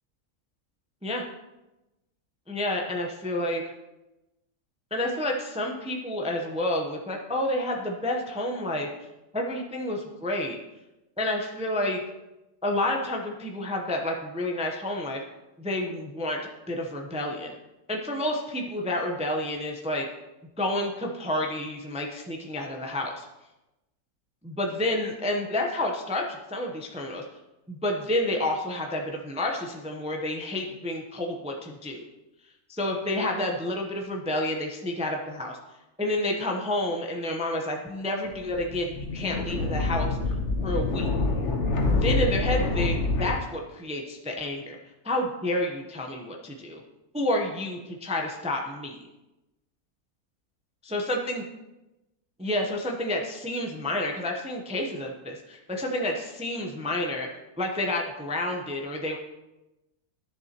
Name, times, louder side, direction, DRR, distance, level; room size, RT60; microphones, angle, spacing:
voice 1, 2.5-3.6 4.9-8.9 9.3-10.6 11.2-12.0 12.6-15.2 15.6-16.4 16.7-17.6 17.9-20.1 20.6-23.3 24.4-27.2 27.7-32.0 32.7-35.6 36.0-40.2 40.6-41.1 41.9-44.8 45.0-46.8 47.1-49.0 50.9-51.4 52.4-57.3 57.6-59.2, left 1 dB, 5° right, 1 dB, 0.5 m, -29 dB
sound 1, 38.3-43.3, left 3 dB, 55° left, 1.2 m, -26 dB
12.0 x 6.9 x 2.9 m, 0.99 s
omnidirectional pair, 1.5 m